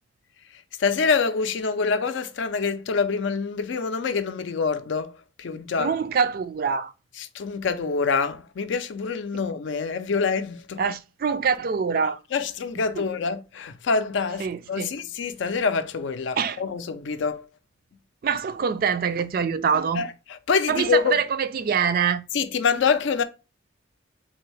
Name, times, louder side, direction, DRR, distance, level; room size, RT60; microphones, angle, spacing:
voice 1, 0.8-5.9 7.2-10.8 12.3-17.5 19.9-21.2 22.3-23.2, left 5 dB, 70° left, 0.4 m, -26 dB
voice 2, 5.8-6.9 10.8-12.2 13.0-13.1 14.4-14.9 16.4-16.6 18.2-20.0 20.7-22.2, right 6 dB, 50° right, 0.3 m, -24 dB
3.8 x 2.6 x 3.1 m
head